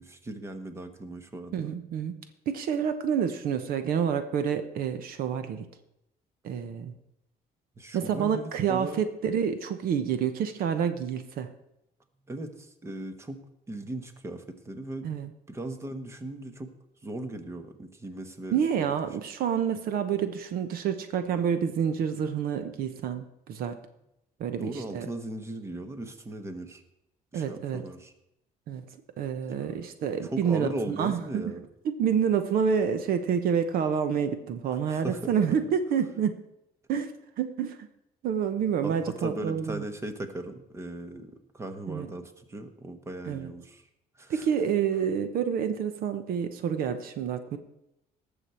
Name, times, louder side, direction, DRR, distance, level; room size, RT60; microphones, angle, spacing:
voice 1, 0.0-1.7 7.8-9.0 12.3-15.1 15.5-16.7 17.0-18.9 24.6-26.8 27.3-28.1 29.6-29.7 30.2-31.7 34.9-35.6 38.8-43.9 44.1-44.5, right 1 dB, 15° right, 8 dB, 1.1 m, -38 dB
voice 2, 1.5-2.2 2.5-5.7 6.4-6.9 7.9-11.5 15.0-15.3 18.5-23.8 24.4-25.1 27.3-27.8 28.7-28.8 29.2-31.5 31.8-36.4 36.9-37.9 38.2-39.8 41.9-42.1 43.3-43.5 44.3-47.6, right 7 dB, 70° right, 10 dB, 1.0 m, -28 dB
18.5 x 7.0 x 4.4 m, 0.82 s
cardioid pair, 150°, 16 cm